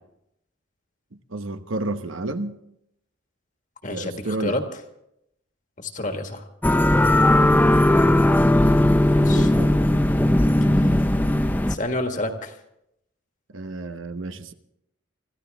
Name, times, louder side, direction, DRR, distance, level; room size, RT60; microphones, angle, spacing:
voice 1, 1.3-2.6 3.9-4.6 7.1-7.6 9.3-9.8 13.5-14.5, right 2 dB, 75° right, 9 dB, 1.0 m, -31 dB
voice 2, 3.8-4.6 5.8-6.4 9.0-9.5 11.7-12.5, left 2 dB, 40° left, 5 dB, 1.6 m, -29 dB
sound 1, 6.6-11.8, left 1 dB, 10° left, 0.5 m, -18 dB
25.5 x 14.0 x 3.5 m, 0.80 s
head